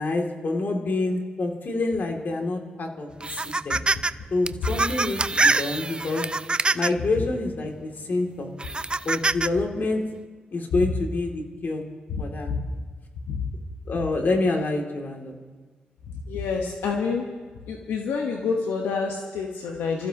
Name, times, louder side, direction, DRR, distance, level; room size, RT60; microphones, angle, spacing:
voice 1, 0.0-3.8 4.3-6.2 6.7-8.5 9.0-10.0 10.5-11.8 12.2-12.5 13.9-15.3, left 2 dB, 55° left, 1 dB, 2.7 m, -27 dB
sound 1, 3.2-4.1 4.5-7.0 7.7-7.8 8.6-9.5, right 3 dB, 25° right, 0.5 m, -24 dB
voice 2, 16.1-17.2 17.7-20.1, left 5 dB, 85° left, 1 dB, 1.2 m, -28 dB
27.5 x 14.5 x 3.0 m, 1.4 s
supercardioid pair, 50°, 4 cm